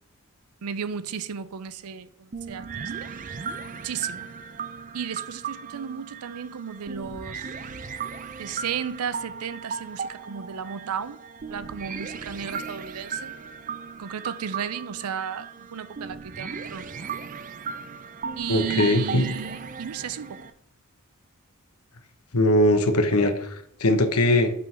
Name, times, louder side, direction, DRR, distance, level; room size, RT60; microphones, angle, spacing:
voice 1, 0.6-3.1 3.8-4.3 4.9-7.5 8.4-11.2 11.5-13.3 14.0-17.1 18.4-20.4, right 7 dB, 90° right, 0.5 m, -34 dB
sound 1, 2.3-20.5, right 5 dB, 35° right, 0.5 m, -37 dB
voice 2, 18.5-19.3 22.3-24.5, left 1 dB, 90° left, 1.0 m, -21 dB
8.2 x 3.8 x 5.8 m
head